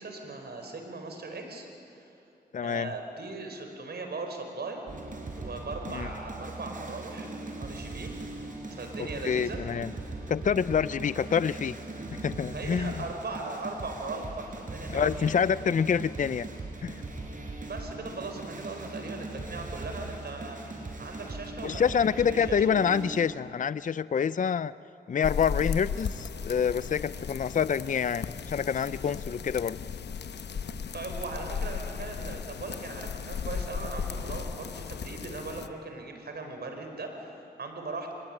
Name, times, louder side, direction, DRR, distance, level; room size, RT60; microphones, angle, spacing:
voice 1, 0.0-1.7 2.6-4.8 5.4-8.2 8.6-9.6 12.5-15.3 17.6-20.6 21.0-22.6 30.9-38.1, right 3 dB, 70° right, 4 dB, 4.7 m, -39 dB
voice 2, 2.5-2.9 5.9-6.1 9.2-9.9 10.3-11.7 12.1-12.9 14.9-16.5 16.8-17.0 21.6-24.7 25.1-29.8, left 7 dB, 50° left, 17 dB, 0.5 m, -27 dB
sound 1, 4.9-23.2, right 2 dB, 50° right, 5.3 m, -40 dB
sound 2, 25.2-35.7, left 6 dB, 80° left, 0.9 m, -36 dB
25.5 x 21.0 x 8.9 m, 2.8 s
cardioid pair, 60°, 17 cm